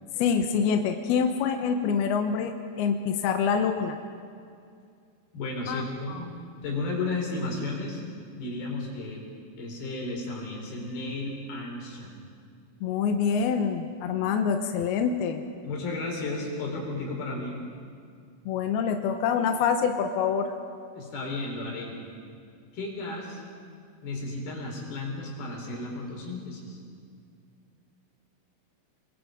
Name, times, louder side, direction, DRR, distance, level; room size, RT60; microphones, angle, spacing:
voice 1, 0.2-2.5 2.8-4.0 5.7-6.2 12.8-15.4 18.5-20.5, left 6 dB, 75° left, 5 dB, 2.4 m, -26 dB
voice 2, 5.3-6.4 6.6-8.0 8.4-9.2 9.6-12.2 15.6-17.6 21.0-22.0 22.7-23.4 24.0-26.8, left 2 dB, 50° left, -1 dB, 6.0 m, -33 dB
29.0 x 22.0 x 5.2 m, 2.3 s
omnidirectional pair, 5.7 m